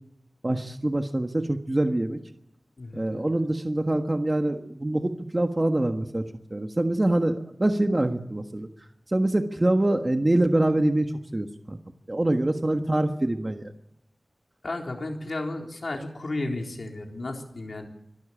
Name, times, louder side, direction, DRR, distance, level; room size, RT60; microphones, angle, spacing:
voice 1, 0.4-2.2 2.9-6.2 6.5-8.7 9.1-11.1 11.3-11.8 12.1-13.7, right 1 dB, 30° right, 5 dB, 1.4 m, -25 dB
voice 2, 2.8-3.3 14.6-17.9, left 2 dB, 65° left, 2 dB, 3.9 m, -33 dB
25.0 x 12.5 x 8.8 m, 0.81 s
wide cardioid pair, 80°, 0 cm